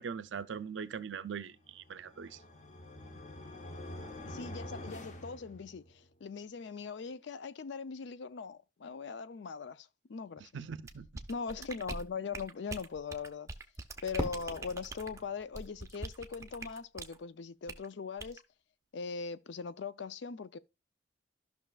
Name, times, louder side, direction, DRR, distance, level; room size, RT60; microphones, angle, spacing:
voice 1, 0.0-2.4 10.5-11.1, right 6 dB, 75° right, 0.5 m, -41 dB
sound 1, 1.8-6.1, left 1 dB, 40° left, 0.8 m, -46 dB
voice 2, 4.3-10.4 11.3-13.5 14.0-18.4 18.9-20.6, left 5 dB, 70° left, 0.4 m, -40 dB
sound 2, 10.8-17.2 17.7-17.9 18.2-18.4, right 2 dB, 15° right, 0.5 m, -44 dB
Fireworks, 14.2-17.0, equal, 20° left, 1.2 m, -42 dB
13.5 x 5.9 x 2.4 m
head